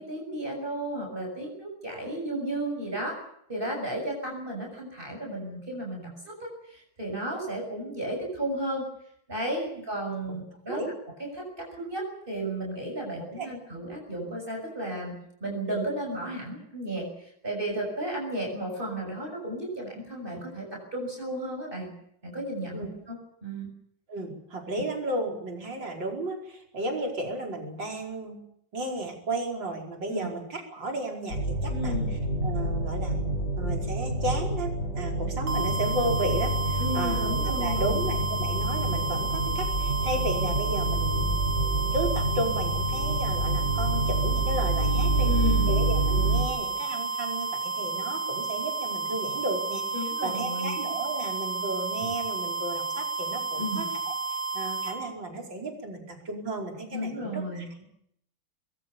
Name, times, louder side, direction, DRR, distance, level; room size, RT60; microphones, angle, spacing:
voice 1, 0.0-3.2 3.5-8.9 9.3-10.8 11.2-15.1 15.4-21.9 22.2-23.7 30.1-30.3 31.7-32.1 36.8-38.0 45.2-45.7 49.9-50.8 53.6-53.8 56.9-57.7, right 1 dB, 25° right, 0 dB, 7.0 m, -33 dB
voice 2, 13.2-13.5 22.7-22.9 24.1-28.4 28.7-33.3 33.6-37.3 37.6-45.3 45.7-54.1 54.5-57.8, right 2 dB, 60° right, 1 dB, 5.6 m, -34 dB
sound 1, 31.3-46.4, right 1 dB, 65° left, 6.8 m, -28 dB
sound 2, 35.5-55.0, right 4 dB, 80° right, 4.7 m, -32 dB
24.0 x 22.0 x 7.0 m, 0.72 s
omnidirectional pair, 2.3 m